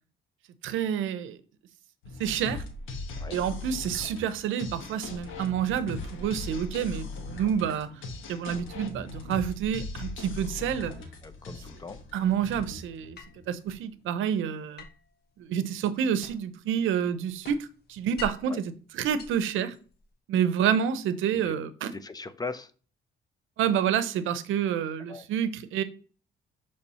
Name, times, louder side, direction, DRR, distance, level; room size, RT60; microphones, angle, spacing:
voice 1, 0.6-1.4 2.2-2.6 3.3-7.9 8.3-10.9 12.1-13.2 13.5-14.8 15.5-17.6 17.9-19.7 20.3-21.9 23.6-25.8, right 8 dB, 85° right, 0.7 m, -28 dB
sound 1, 2.0-13.7, left 3 dB, 85° left, 1.2 m, -39 dB
voice 2, 11.2-12.0 18.5-18.6 21.3-21.5 21.9-22.7 25.1-25.3, left 4 dB, 20° left, 0.6 m, -39 dB
sound 2, 13.1-13.9 14.8-16.6 16.9-18.6 19.0-20.1, left 3 dB, 55° left, 1.3 m, -46 dB
6.7 x 3.4 x 4.2 m
cardioid pair, 90°, 20 cm